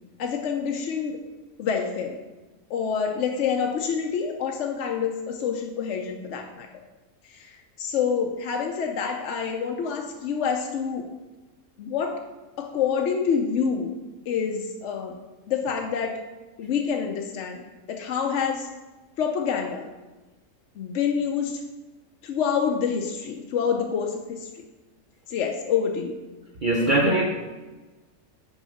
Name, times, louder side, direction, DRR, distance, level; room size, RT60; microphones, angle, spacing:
voice 1, 0.2-1.2 1.6-2.2 2.7-6.7 7.2-11.1 11.8-12.2 12.6-13.9 14.3-15.2 15.5-16.2 16.6-18.7 19.2-19.9 20.8-21.6 22.2-24.6 25.3-26.2 27.1-27.2, left 6 dB, 65° left, 2 dB, 0.9 m, -27 dB
voice 2, 26.6-27.3, right 2 dB, 45° right, 0 dB, 0.7 m, -21 dB
6.3 x 4.8 x 6.3 m, 1.2 s
omnidirectional pair, 1.4 m